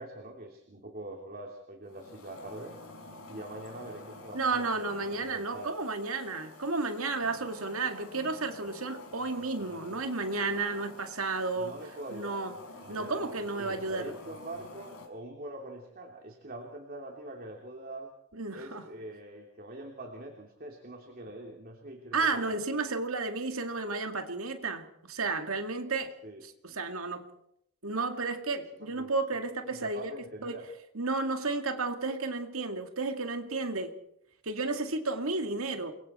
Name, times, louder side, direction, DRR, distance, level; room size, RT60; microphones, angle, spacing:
voice 1, 0.0-2.7 3.3-5.7 11.5-12.4 12.9-13.3 13.6-18.1 18.5-22.6 26.2-26.4 28.8-29.1 29.6-30.6, right 1 dB, 40° right, 1 dB, 2.9 m, -44 dB
sound 1, 1.8-15.1, left 2 dB, 80° left, 5.9 m, -49 dB
voice 2, 4.3-11.7 12.1-12.5 12.9-14.1 18.3-18.9 22.1-26.1 26.4-27.3 27.8-30.1 30.4-30.6 30.9-33.9 34.4-35.9, right 3 dB, 75° right, 6 dB, 2.3 m, -32 dB
28.5 x 23.0 x 4.4 m, 0.75 s
head